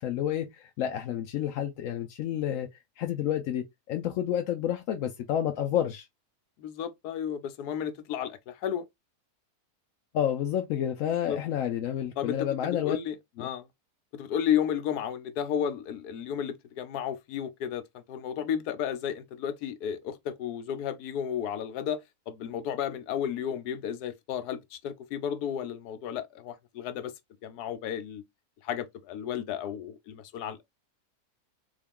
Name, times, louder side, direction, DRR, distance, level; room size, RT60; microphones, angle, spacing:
voice 1, 0.0-2.7 3.0-6.1 10.1-13.0 13.4-13.5, left 10 dB, 70° left, 0.9 m, -30 dB
voice 2, 6.6-8.8 11.0-11.4 12.2-13.7 14.1-17.8 18.1-27.1 27.4-28.2 28.6-30.6, left 9 dB, 90° left, 1.2 m, -33 dB
3.7 x 2.3 x 3.6 m
omnidirectional pair, 1.6 m